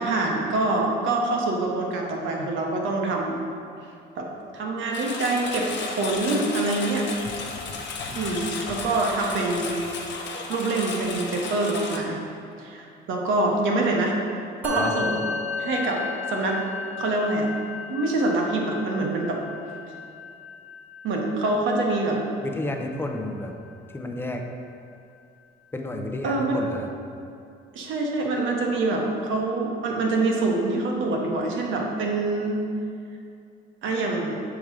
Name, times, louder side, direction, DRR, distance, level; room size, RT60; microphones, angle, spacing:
voice 1, 0.0-3.4 4.2-4.3 4.5-7.1 8.1-9.8 10.2-12.2 12.6-14.2 14.6-15.3 15.6-16.0 16.3-16.6 17.0-17.5 17.9-19.4 21.0-22.2 26.2-26.6 27.7-32.6 33.8-34.4, right 2 dB, 75° right, 0 dB, 1.1 m, -25 dB
Engine, 4.9-12.0, left 4 dB, 60° left, 0.8 m, -34 dB
Musical instrument, 14.6-24.2, left 4 dB, 5° right, 1.2 m, -35 dB
voice 2, 22.4-23.5 23.9-24.4 25.7-26.9, left 1 dB, 10° left, 3 dB, 0.6 m, -31 dB
7.0 x 3.7 x 4.7 m, 2.5 s
cardioid pair, 115°, 20 cm